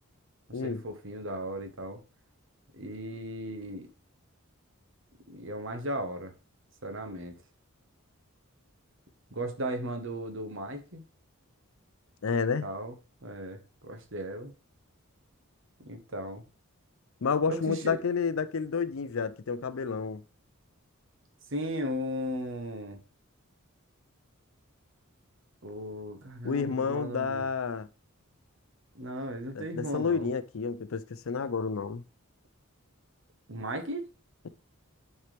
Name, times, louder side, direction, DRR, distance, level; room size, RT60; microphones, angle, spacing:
voice 1, 0.5-2.0 2.7-3.9 5.3-6.3 6.8-7.3 9.3-11.0 12.6-12.9 13.2-14.5 15.8-16.4 17.5-18.0 21.5-23.0 25.6-27.4 28.9-30.3 33.5-34.1, equal, 60° right, 1.3 m, -36 dB
voice 2, 12.2-12.7 17.2-20.2 26.4-27.9 29.5-32.0, left 5 dB, 70° left, 0.5 m, -30 dB
9.6 x 4.5 x 3.4 m
head